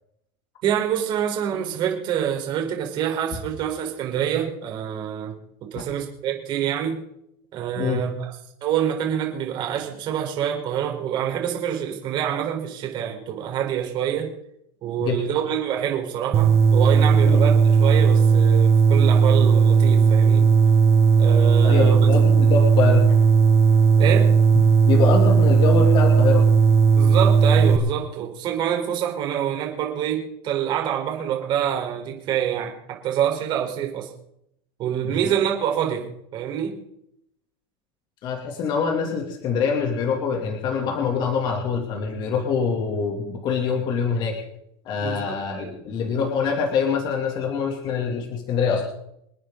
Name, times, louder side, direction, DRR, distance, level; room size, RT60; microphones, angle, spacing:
voice 1, 0.6-5.3 5.6-7.0 7.5-8.3 8.6-14.3 14.8-20.5 21.2-22.0 24.0-24.4 27.0-34.1 34.8-36.7 45.0-45.7, right 9 dB, 35° right, 2 dB, 4.1 m, -26 dB
sound 1, 16.3-27.8, right 5 dB, 20° right, 1.3 m, -16 dB
voice 2, 21.6-23.2 24.5-26.4 35.0-35.3 38.2-44.4 44.8-48.9, left 5 dB, 35° left, 2 dB, 2.8 m, -25 dB
28.0 x 9.4 x 3.9 m, 0.75 s
supercardioid pair, 150°, 13 cm